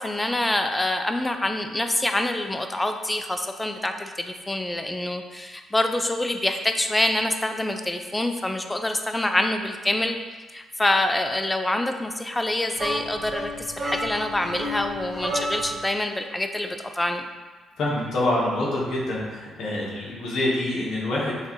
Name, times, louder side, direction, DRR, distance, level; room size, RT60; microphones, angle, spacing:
voice 1, 0.0-10.2 10.5-17.2, left 1 dB, 15° left, 6 dB, 0.4 m, -26 dB
sound 1, 12.8-15.9, equal, 35° right, 1.0 m, -31 dB
voice 2, 17.8-21.4, left 1 dB, 70° left, -5 dB, 1.3 m, -26 dB
6.4 x 2.5 x 3.1 m, 1.3 s
cardioid pair, 90°, 0 cm